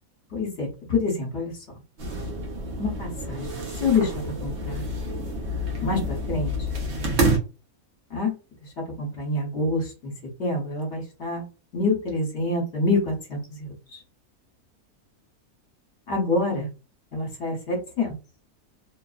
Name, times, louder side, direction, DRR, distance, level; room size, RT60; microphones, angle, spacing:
voice 1, 0.3-1.5 2.8-3.5 3.8-4.8 5.8-6.0 6.3-6.5 8.1-8.3 9.0-10.1 10.4-11.4 11.7-14.0 16.1-16.7 17.1-18.1, left 3 dB, 50° left, -1 dB, 1.2 m, -26 dB
sound 1, 2.0-7.4, right 1 dB, 55° right, 0.8 m, -28 dB
2.8 x 2.0 x 2.4 m, 0.32 s
omnidirectional pair, 1.6 m